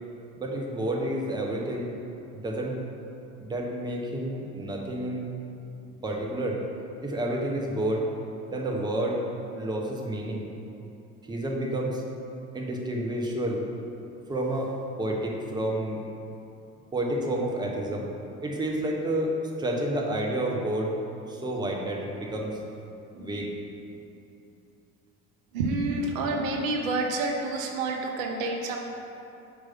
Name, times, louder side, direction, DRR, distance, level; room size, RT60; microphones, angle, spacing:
voice 1, 0.4-1.9 2.3-2.8 3.4-5.3 6.0-6.6 7.0-8.1 8.5-9.2 9.5-10.5 11.3-12.0 12.5-13.6 14.3-16.0 16.9-18.1 18.4-21.0 21.3-22.6 23.2-23.6, right 1 dB, 10° right, -1 dB, 0.8 m, -30 dB
voice 2, 23.1-23.4 25.5-28.8, right 2 dB, 65° right, 2 dB, 0.8 m, -29 dB
4.8 x 4.8 x 5.8 m, 2.7 s
figure-of-eight pair, 60°, 44 cm